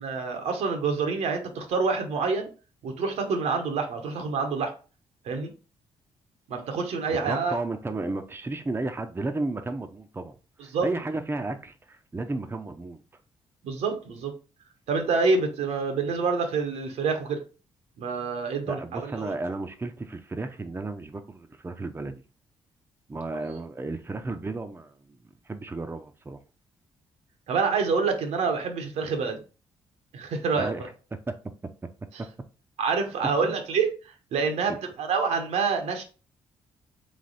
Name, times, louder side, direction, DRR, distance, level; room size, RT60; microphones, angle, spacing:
voice 1, 0.0-2.5 2.8-4.7 5.2-5.5 6.5-7.6 10.7-10.9 13.6-14.3 14.9-17.4 18.0-19.3 27.5-29.4 30.1-30.9 32.8-36.0, right 4 dB, 75° right, 0.9 m, -27 dB
voice 2, 7.1-10.3 10.6-13.0 18.7-22.2 23.1-25.2 25.5-26.4 30.5-31.4 32.2-32.3 33.4-33.5, right 2 dB, 20° right, 0.6 m, -33 dB
3.4 x 3.3 x 4.0 m
supercardioid pair, 55°, 11 cm